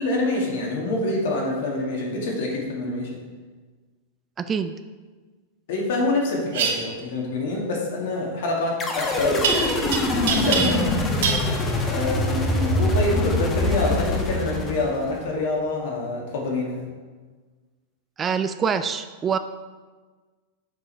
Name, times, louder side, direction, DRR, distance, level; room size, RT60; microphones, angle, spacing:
voice 1, 0.0-3.1 5.7-9.6 10.3-11.1 11.9-16.8, left 2 dB, 70° left, -1 dB, 1.9 m, -26 dB
voice 2, 4.4-4.7 18.2-19.4, right 6 dB, 20° right, 10 dB, 0.3 m, -25 dB
sound 1, 6.5-6.7 9.4-10.0 10.3-10.9 11.2-11.5, right 6 dB, 75° right, 1.0 m, -23 dB
sound 2, 8.8-15.3, left 2 dB, 20° left, 0.9 m, -24 dB
5.9 x 5.2 x 4.4 m, 1.4 s
supercardioid pair, 135°, 0 cm